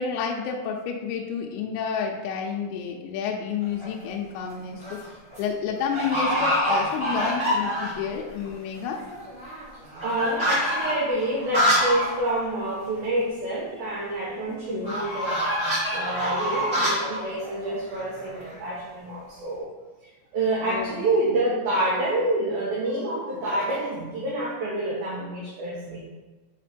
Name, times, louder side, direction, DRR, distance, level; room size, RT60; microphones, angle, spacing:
voice 1, 0.0-4.8 5.4-9.0 14.7-14.9 20.6-21.0, left 6 dB, 80° left, 0 dB, 2.9 m, -30 dB
sound 1, 3.6-4.1 4.6-5.1 5.3-5.4 5.9-8.1 8.4-8.5 8.7-12.1 12.4-12.5 12.8-12.9 14.8-18.6, equal, 35° right, 0.9 m, -26 dB
voice 2, 9.9-15.4 15.9-19.7 20.0-26.0, right 1 dB, 70° right, -5 dB, 2.4 m, -27 dB
8.5 x 3.6 x 5.1 m, 1.2 s
omnidirectional pair, 5.5 m